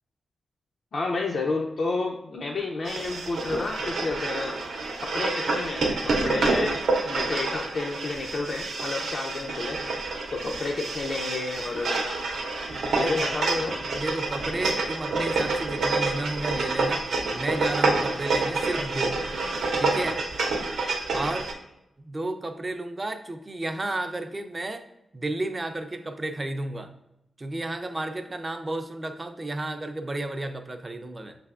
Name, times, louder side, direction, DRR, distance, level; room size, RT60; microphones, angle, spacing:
voice 1, 0.9-4.6 5.0-6.8 7.0-9.8 10.3-12.1 12.9-13.8, left 3 dB, 60° left, 0 dB, 0.4 m, -30 dB
sound 1, 2.8-21.5, right 3 dB, 85° right, 0.7 m, -28 dB
voice 2, 14.0-19.2 19.8-20.2 21.1-21.5 22.0-24.8 25.1-26.9 27.4-31.4, right 2 dB, 25° right, 7 dB, 0.4 m, -32 dB
5.9 x 3.3 x 2.4 m, 0.86 s
wide cardioid pair, 120°, 0 cm